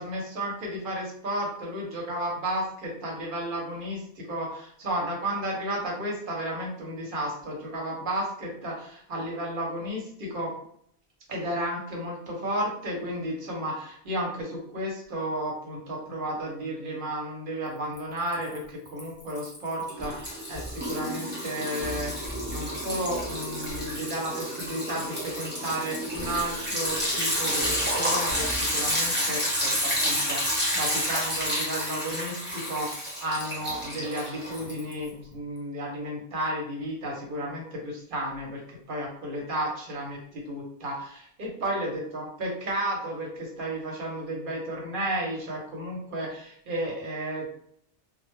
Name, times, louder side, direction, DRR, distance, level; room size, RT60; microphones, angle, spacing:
voice 1, 0.0-10.5 11.3-47.5, right 1 dB, 60° right, -2 dB, 0.8 m, -33 dB
Liquid, 18.0-18.6 18.9-35.1, equal, 10° right, 0.8 m, -30 dB
2.1 x 2.1 x 3.0 m, 0.67 s
omnidirectional pair, 1.1 m